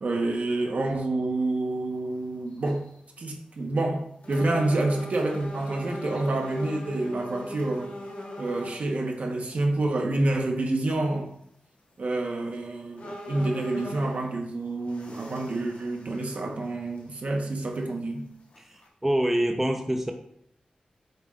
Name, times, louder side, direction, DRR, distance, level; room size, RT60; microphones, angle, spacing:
voice 1, 0.0-2.8 3.2-7.9 8.4-11.3 12.0-18.2, right 2 dB, 60° right, 1.1 m, -28 dB
sound 1, 1.9-2.0 2.5-2.9 3.5-3.6 4.2-8.9 9.5-9.6 12.0-12.1 12.5-12.6 13.0-14.4 14.9-16.7 17.0-17.1 17.7-17.8 18.5-18.9, left 1 dB, 70° left, 2.1 m, -40 dB
voice 2, 18.7-20.1, right 1 dB, 10° right, 0.7 m, -26 dB
7.9 x 6.9 x 2.5 m
wide cardioid pair, 85°, 3 cm